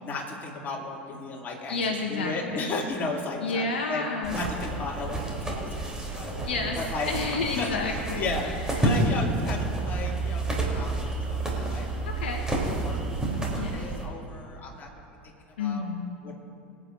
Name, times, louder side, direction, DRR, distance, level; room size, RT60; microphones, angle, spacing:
voice 1, 0.0-4.0 4.3-6.4 6.8-7.1 7.6-13.0 13.3-14.9 15.2-15.8 16.2-16.3, left 3 dB, 30° left, -1 dB, 2.4 m, -35 dB
voice 2, 1.7-2.8 3.4-4.4 6.4-8.5 12.0-12.5 13.5-13.8 15.6-16.2, left 3 dB, 70° left, 2 dB, 1.1 m, -30 dB
sound 1, 4.2-14.1, right 2 dB, 10° right, 3.3 m, -29 dB
25.0 x 9.1 x 2.6 m, 2.8 s
figure-of-eight pair, 75°, 6 cm